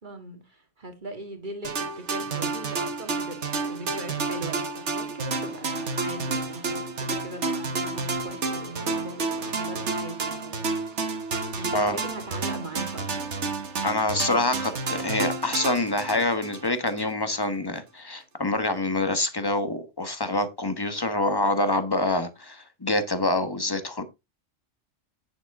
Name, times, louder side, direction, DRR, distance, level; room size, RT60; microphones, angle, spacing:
voice 1, 0.0-10.7 11.5-13.1, right 2 dB, 40° right, 2.2 m, -39 dB
sound 1, 1.6-17.1, right 3 dB, 75° right, 1.6 m, -30 dB
voice 2, 13.8-24.0, left 2 dB, 20° left, 1.1 m, -26 dB
9.0 x 7.3 x 3.6 m
omnidirectional pair, 1.2 m